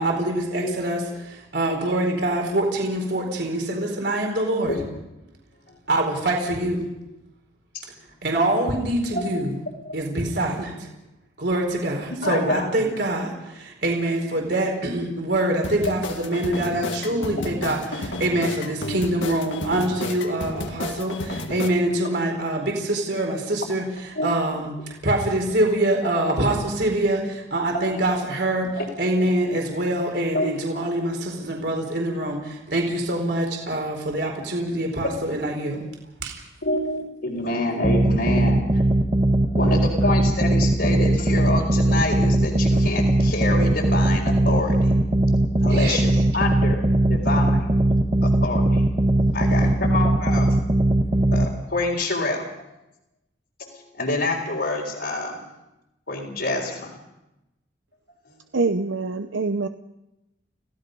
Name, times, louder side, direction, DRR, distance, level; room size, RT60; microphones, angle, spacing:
voice 1, 0.0-4.8 5.9-6.9 8.2-9.5 9.9-10.9 11.4-24.7 25.0-28.7 29.0-35.8 36.2-36.3 45.7-46.0 49.5-49.9, right 1 dB, 60° right, 1 dB, 4.3 m, -25 dB
voice 2, 9.1-9.4 9.8-10.0 12.2-12.7 17.1-17.5 24.2-24.3 27.7-28.0 28.8-28.9 30.3-30.5 35.0-35.1 36.6-38.8 39.5-45.0 45.6-47.7 48.2-48.8 49.3-50.5 51.3-52.4 53.6-55.4 56.1-57.0, left 2 dB, 65° left, -5 dB, 3.9 m, -27 dB
sound 1, 15.6-21.7, left 2 dB, 85° left, 2.0 m, -32 dB
sound 2, 37.8-51.5, right 1 dB, 25° right, 1.3 m, -20 dB
voice 3, 58.5-59.7, right 3 dB, 75° right, 8 dB, 0.7 m, -24 dB
29.5 x 16.5 x 5.4 m, 0.93 s
head